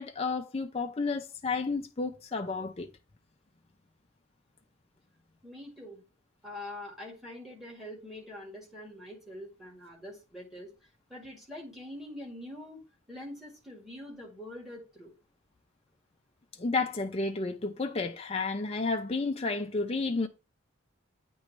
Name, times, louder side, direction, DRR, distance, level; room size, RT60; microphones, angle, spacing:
voice 1, 0.0-2.9 16.6-20.3, left 3 dB, 30° left, 0.5 m, -31 dB
voice 2, 5.4-6.0 6.4-10.7 11.1-12.8 13.1-15.1, left 1 dB, ahead, 1.9 m, -44 dB
8.4 x 3.1 x 4.5 m
head